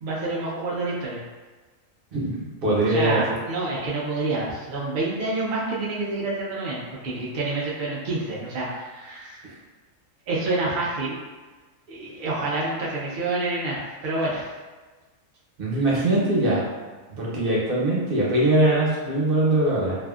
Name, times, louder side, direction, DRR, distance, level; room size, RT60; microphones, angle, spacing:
voice 1, 0.0-1.2 2.8-9.4 10.3-11.2 11.9-14.5, right 2 dB, 70° right, -5 dB, 0.4 m, -28 dB
voice 2, 2.6-3.2 9.4-9.5 15.6-16.6 17.2-20.0, right 1 dB, 50° right, -6 dB, 0.8 m, -21 dB
2.7 x 2.5 x 2.3 m, 1.3 s
omnidirectional pair, 1.4 m